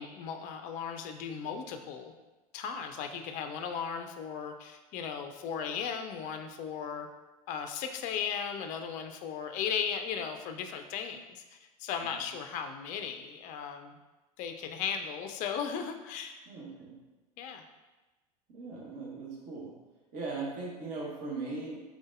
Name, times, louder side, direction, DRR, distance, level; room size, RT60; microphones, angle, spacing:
voice 1, 0.0-2.1 2.5-7.1 7.5-14.0 14.4-16.4 17.4-17.6, left 7 dB, 40° left, 6 dB, 0.4 m, -36 dB
voice 2, 16.5-17.0 18.5-19.7 20.1-21.8, right 3 dB, 45° right, -3 dB, 1.1 m, -39 dB
3.8 x 3.5 x 2.5 m, 1.1 s
figure-of-eight pair, 75°, 20 cm